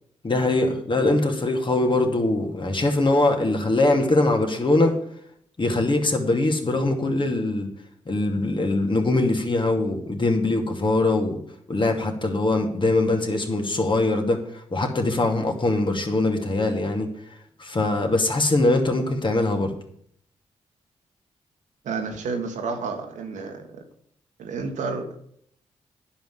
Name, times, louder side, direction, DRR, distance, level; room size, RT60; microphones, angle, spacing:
voice 1, 0.2-5.0 5.6-7.7 8.1-11.4 11.7-14.4 14.7-17.1 17.6-19.7, left 2 dB, 40° left, 3 dB, 2.6 m, -22 dB
voice 2, 21.9-23.5 24.4-25.1, right 4 dB, 80° right, 4 dB, 1.7 m, -30 dB
10.0 x 5.8 x 8.3 m, 0.66 s
supercardioid pair, 40°, 13 cm